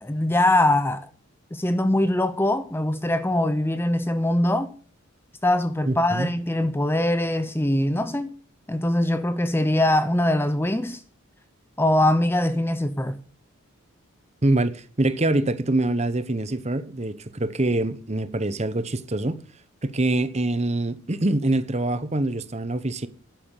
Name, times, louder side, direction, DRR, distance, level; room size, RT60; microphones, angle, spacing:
voice 1, 0.0-1.1 1.5-4.7 5.4-8.3 8.7-11.0 11.8-13.2, left 1 dB, 10° left, 0.6 m, -22 dB
voice 2, 5.9-6.3 14.4-19.4 19.8-23.1, right 2 dB, 30° right, 0.9 m, -24 dB
12.0 x 9.3 x 6.8 m
head